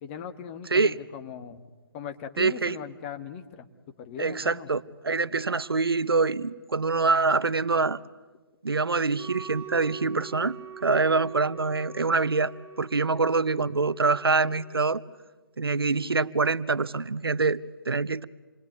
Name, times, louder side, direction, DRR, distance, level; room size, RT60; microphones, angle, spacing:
voice 1, 0.0-1.6 1.9-3.7 4.0-4.7 13.1-13.2, left 8 dB, 30° left, 8 dB, 1.7 m, -39 dB
voice 2, 2.4-2.8 4.2-8.0 8.6-12.5 12.8-15.0 15.6-18.2, right 4 dB, 85° right, 17 dB, 0.9 m, -25 dB
Wind instrument woodwind instrument, 9.1-15.0, right 6 dB, 20° right, 2.6 m, -45 dB
28.0 x 22.0 x 9.4 m, 1.3 s
figure-of-eight pair, 140°, 12 cm